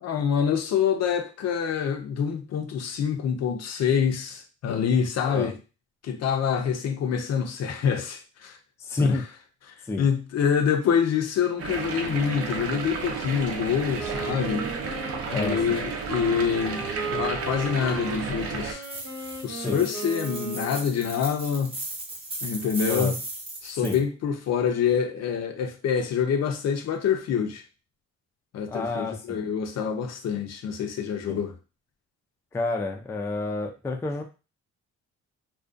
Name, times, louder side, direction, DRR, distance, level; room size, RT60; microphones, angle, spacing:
voice 1, 0.0-5.5 6.0-8.6 9.0-9.2 10.0-14.7 15.3-18.8 19.4-21.7 22.4-23.2 23.6-27.6 28.5-31.5, left 7 dB, 60° left, 0.6 m, -26 dB
voice 2, 8.8-9.2 9.9-10.0 15.3-15.8 19.6-19.8 22.9-23.1 23.8-24.0 28.7-29.4 31.3-31.4 32.5-34.2, left 2 dB, 10° left, 0.3 m, -29 dB
sound 1, 11.6-18.7, right 5 dB, 50° right, 0.6 m, -32 dB
Wind instrument woodwind instrument, 14.0-21.0, right 4 dB, 85° right, 0.9 m, -36 dB
sound 2, 18.8-24.0, right 2 dB, 20° right, 0.7 m, -37 dB
2.5 x 2.2 x 2.5 m
cardioid pair, 90°, 30 cm